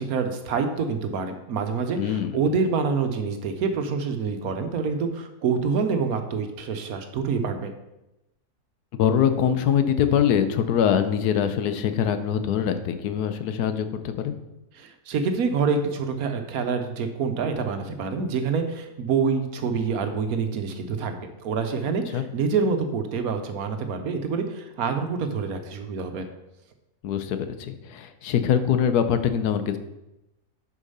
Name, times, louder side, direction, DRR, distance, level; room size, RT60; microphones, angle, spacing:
voice 1, 0.0-7.7 14.7-26.3, right 5 dB, 70° right, 7 dB, 1.3 m, -26 dB
voice 2, 2.0-2.4 8.9-14.3 22.1-22.2 27.0-29.8, left 8 dB, 85° left, 9 dB, 1.3 m, -23 dB
6.6 x 5.5 x 5.4 m, 0.93 s
omnidirectional pair, 1.6 m